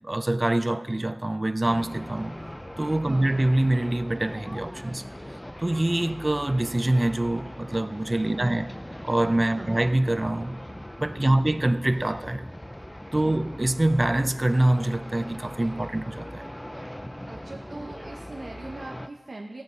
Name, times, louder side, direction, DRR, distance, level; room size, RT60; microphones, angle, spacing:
voice 1, 0.0-2.4 2.8-5.0 5.6-8.6 9.0-10.6 11.0-12.4 13.1-16.5, right 1 dB, 35° right, 0.5 m, -25 dB
sound 1, 1.6-19.1, equal, 10° left, 0.5 m, -40 dB
voice 2, 3.1-3.4 8.3-8.6 9.5-9.8 11.3-11.5 13.3-13.5 17.3-19.6, right 2 dB, 70° right, 0.9 m, -40 dB
17.0 x 8.0 x 5.2 m
wide cardioid pair, 55°, 0 cm